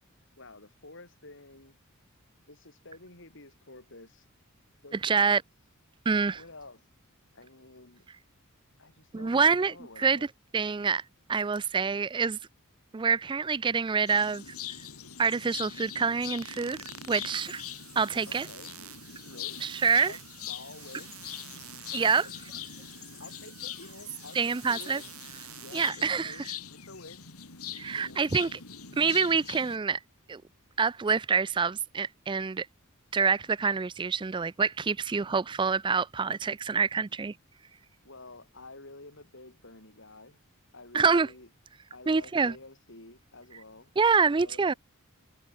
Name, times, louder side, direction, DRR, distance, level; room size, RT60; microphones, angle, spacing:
voice 1, 0.4-1.8 2.5-4.3 4.8-5.4 6.3-6.8 7.3-8.1 8.8-10.2 18.3-18.7 19.2-19.8 20.0-21.2 22.0-22.6 23.2-25.2 25.6-27.3 27.9-28.3 38.0-40.4 40.7-41.5 41.9-43.9 44.2-44.8, left 2 dB, 60° left, 6.1 m, -50 dB
voice 2, 5.0-5.4 6.1-6.4 9.1-10.2 10.5-11.0 11.3-12.4 12.9-14.4 15.2-16.8 17.1-17.6 18.0-18.5 19.6-20.1 21.9-22.2 24.3-25.0 25.7-26.5 27.7-28.6 29.0-30.0 30.3-30.4 30.8-32.7 33.1-37.3 40.9-41.3 42.1-42.5 44.0-44.7, right 5 dB, 20° right, 0.4 m, -26 dB
sound 1, 14.1-29.8, left 10 dB, 80° left, 5.3 m, -43 dB
sound 2, 16.4-25.9, right 11 dB, 75° right, 5.7 m, -49 dB
head